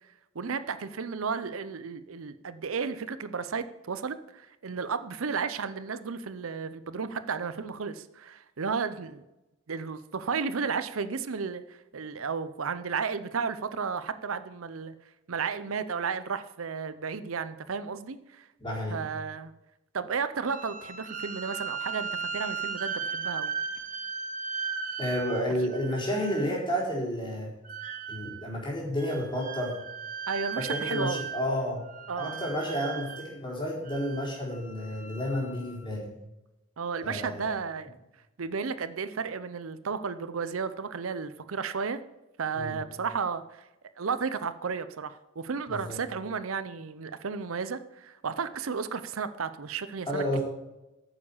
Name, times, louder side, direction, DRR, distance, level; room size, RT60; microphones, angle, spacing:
voice 1, 0.3-9.2 9.7-14.9 15.3-18.5 18.9-19.5 19.9-23.5 30.3-31.3 32.1-32.7 36.8-37.9 38.4-42.0 42.4-43.6 44.0-50.4, right 5 dB, 75° right, 13 dB, 0.7 m, -33 dB
voice 2, 18.6-19.0 25.0-27.5 28.1-29.8 30.6-31.8 32.2-36.1 37.0-37.5 42.5-42.8 45.7-46.0 50.1-50.4, equal, 25° left, -4 dB, 4.3 m, -31 dB
sound 1, 20.4-26.6 27.6-28.5 29.0-31.6 31.8-33.3 33.8-35.9, right 6 dB, 40° right, 1.3 m, -37 dB
9.7 x 7.2 x 7.2 m, 0.96 s
head